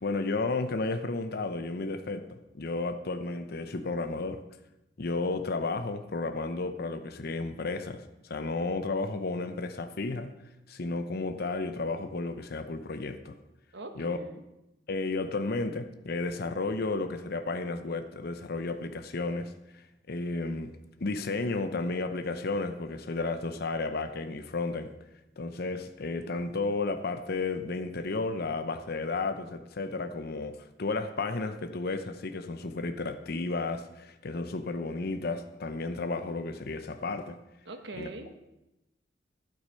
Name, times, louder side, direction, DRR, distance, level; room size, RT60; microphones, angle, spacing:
voice 1, 0.0-4.4 5.0-10.3 10.7-13.4 14.0-14.2 14.9-20.7 21.0-24.9 25.4-37.4 38.0-38.1, left 3 dB, 55° left, 9 dB, 0.7 m, -33 dB
voice 2, 13.7-14.4 37.7-38.3, right 2 dB, 65° right, 6 dB, 1.4 m, -42 dB
12.0 x 8.2 x 5.6 m, 0.95 s
head